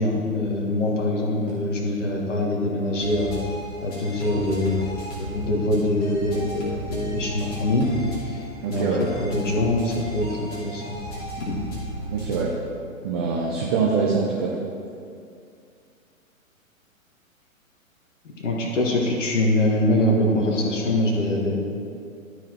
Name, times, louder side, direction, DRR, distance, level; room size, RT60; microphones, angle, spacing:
voice 1, 0.0-3.4 3.8-4.8 5.2-11.0 11.4-11.5 18.4-21.6, left 1 dB, 60° left, -1 dB, 1.7 m, -24 dB
sound 1, 3.0-12.6, right 1 dB, 20° left, 2.3 m, -34 dB
voice 2, 8.6-9.0 12.1-12.5 13.0-14.5, right 5 dB, 20° right, -3 dB, 0.5 m, -24 dB
12.0 x 4.9 x 4.4 m, 2.4 s
figure-of-eight pair, 120°, 42 cm